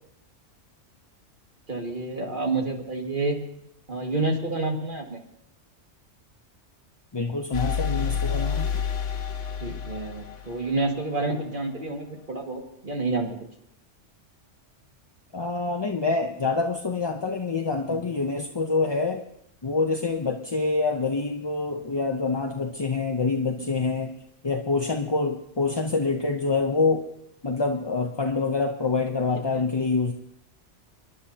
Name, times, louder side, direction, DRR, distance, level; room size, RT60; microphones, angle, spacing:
voice 1, 1.7-3.4 3.9-5.2 9.6-13.3 17.9-18.0 23.6-23.8 29.5-29.6, right 3 dB, 45° right, 1 dB, 2.1 m, -29 dB
voice 2, 7.1-8.7 15.3-19.2 19.6-24.1 24.4-27.1 27.4-30.1, left 3 dB, 25° left, 3 dB, 0.6 m, -26 dB
sound 1, 7.5-11.3, left 7 dB, 75° left, 1.4 m, -29 dB
29.0 x 11.0 x 2.8 m, 0.75 s
omnidirectional pair, 1.3 m